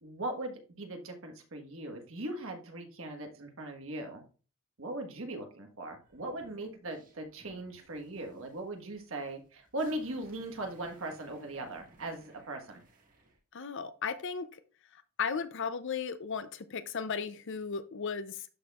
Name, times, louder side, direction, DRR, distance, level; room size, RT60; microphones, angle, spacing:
voice 1, 0.0-4.2 4.8-12.8, right 1 dB, 60° right, 3 dB, 1.5 m, -39 dB
sound 1, 6.0-13.4, right 1 dB, 35° right, 1.8 m, -61 dB
voice 2, 13.5-14.5 15.2-18.5, left 6 dB, 55° left, 13 dB, 0.5 m, -35 dB
12.5 x 4.4 x 2.4 m, 0.37 s
head